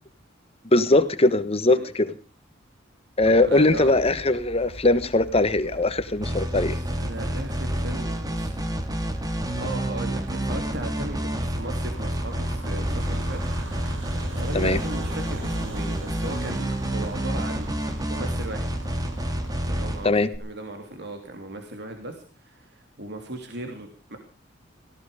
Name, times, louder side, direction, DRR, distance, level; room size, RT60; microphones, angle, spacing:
voice 1, 0.7-2.1 3.2-6.7 14.5-14.8 20.0-20.3, left 2 dB, 30° left, 12 dB, 1.4 m, -20 dB
voice 2, 3.2-3.9 6.6-8.5 9.0-13.4 14.3-17.7 18.1-18.7 19.6-20.1 20.4-24.2, right 2 dB, 60° right, 4 dB, 3.1 m, -37 dB
sound 1, 3.2-19.9, right 1 dB, 80° right, 4.8 m, -39 dB
sound 2, 6.2-20.4, right 1 dB, 20° right, 2.1 m, -29 dB
18.0 x 16.5 x 5.0 m, 0.37 s
head